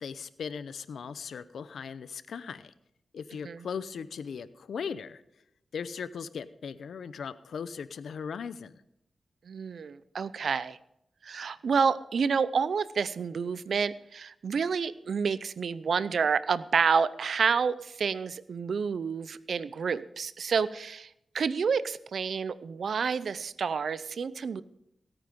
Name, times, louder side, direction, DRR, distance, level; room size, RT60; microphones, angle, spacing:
voice 1, 0.0-2.7 3.1-5.2 5.7-8.8, left 6 dB, 85° left, 15 dB, 0.7 m, -38 dB
voice 2, 9.5-10.8 11.2-21.1 21.3-24.6, right 6 dB, 75° right, 17 dB, 0.6 m, -29 dB
17.0 x 9.0 x 5.2 m, 0.80 s
cardioid pair, 55°, 0 cm